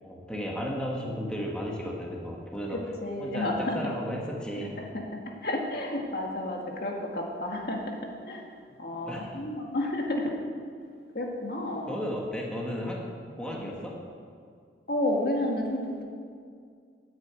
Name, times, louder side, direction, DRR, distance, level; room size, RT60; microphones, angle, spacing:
voice 1, 0.0-2.8 3.2-4.8 8.8-9.4 11.8-13.0 13.4-14.0, equal, 5° left, -2 dB, 1.6 m, -34 dB
voice 2, 2.7-3.8 4.8-5.0 5.4-8.0 8.3-8.5 8.8-10.3 11.1-12.0 13.6-13.7 14.9-16.0, left 1 dB, 55° left, 0 dB, 2.0 m, -31 dB
10.5 x 9.0 x 9.2 m, 2.2 s
head